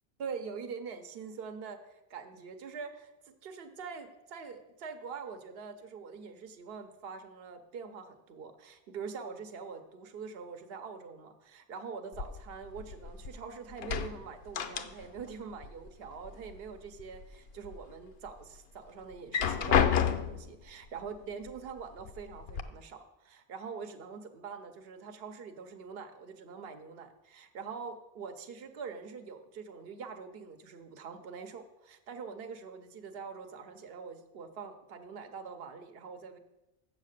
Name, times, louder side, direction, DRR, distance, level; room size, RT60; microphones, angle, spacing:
voice 1, 0.2-36.4, right 5 dB, 75° right, 8 dB, 1.0 m, -44 dB
sound 1, 12.1-13.4 13.7-15.3 15.6-16.6 17.0-17.8 18.3-18.4 19.1-20.5 21.5-21.6 22.0-22.6, left 8 dB, 75° left, 0.8 m, -31 dB
7.6 x 7.4 x 6.5 m, 0.98 s
omnidirectional pair, 1.0 m